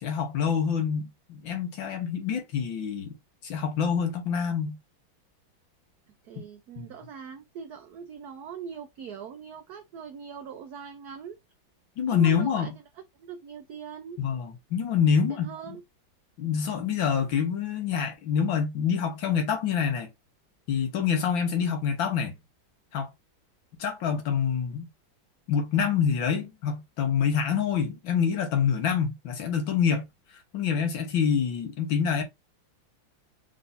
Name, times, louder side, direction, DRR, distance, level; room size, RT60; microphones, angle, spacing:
voice 1, 0.0-3.2 3.4-4.8 6.4-6.5 6.8-6.9 12.0-12.8 14.2-15.8 16.4-20.1 20.7-22.3 22.9-23.1 23.8-24.9 25.5-30.1 30.5-32.2, left 7 dB, 70° left, 1.9 m, -26 dB
voice 2, 6.2-11.4 12.1-12.7 13.2-14.2 15.3-15.8, right 7 dB, 70° right, 0.9 m, -41 dB
4.7 x 2.6 x 4.0 m
omnidirectional pair, 2.2 m